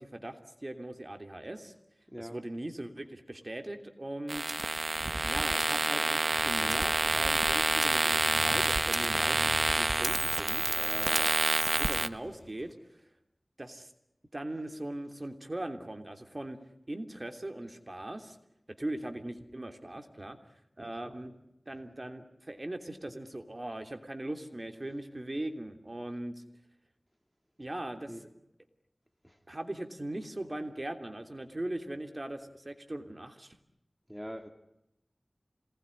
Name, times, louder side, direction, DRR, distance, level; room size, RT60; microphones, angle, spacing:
voice 1, 0.0-1.7 2.2-4.5 5.2-9.4 9.7-11.3 11.7-13.0 13.6-13.9 14.3-16.6 16.9-18.4 18.8-20.4 20.8-21.4 21.7-26.4 27.6-28.2 29.5-33.6, right 1 dB, 40° right, 3.1 m, -40 dB
voice 2, 2.1-2.5 28.1-28.4 29.2-29.4 34.1-34.5, equal, ahead, 2.6 m, -43 dB
sound 1, 4.3-12.1, right 2 dB, 60° right, 1.1 m, -28 dB
Motorcycle, 6.3-12.7, left 1 dB, 25° left, 5.9 m, -46 dB
27.0 x 19.5 x 9.8 m
wide cardioid pair, 55°, 0 cm